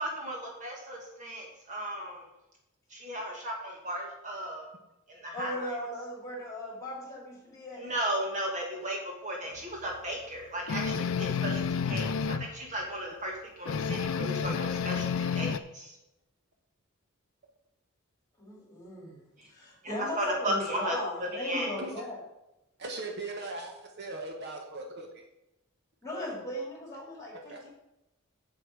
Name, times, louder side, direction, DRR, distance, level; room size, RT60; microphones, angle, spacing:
voice 1, 0.0-2.3 2.9-4.7 5.1-5.7 7.8-12.1 12.4-13.3 13.6-15.9 19.8-21.0 21.3-21.7, right 1 dB, 35° right, -1 dB, 1.5 m, -35 dB
voice 2, 5.3-7.9 9.4-9.5 18.4-22.2 26.0-27.7, left 1 dB, 15° left, -3 dB, 3.8 m, -38 dB
sound 1, 10.7-12.5 13.7-15.6, left 6 dB, 70° left, 0.4 m, -30 dB
voice 3, 22.8-25.2 27.5-27.6, right 2 dB, 55° right, 2 dB, 1.2 m, -39 dB
7.7 x 7.7 x 4.9 m, 0.92 s
head